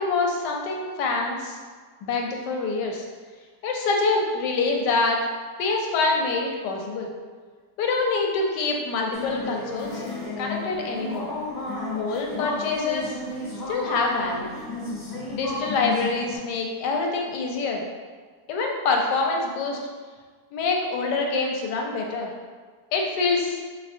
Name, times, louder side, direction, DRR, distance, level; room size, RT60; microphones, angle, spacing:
voice 1, 0.0-1.6 2.0-3.0 3.6-5.2 5.6-7.1 7.8-10.0 10.4-11.3 12.0-13.2 13.7-14.5 15.3-17.8 18.5-19.8 20.5-22.3 22.9-23.6, left 3 dB, 90° left, 1 dB, 1.2 m, -25 dB
sound 1, 9.1-16.4, left 2 dB, 40° left, 0.6 m, -32 dB
4.2 x 2.3 x 2.5 m, 1.5 s
omnidirectional pair, 1.8 m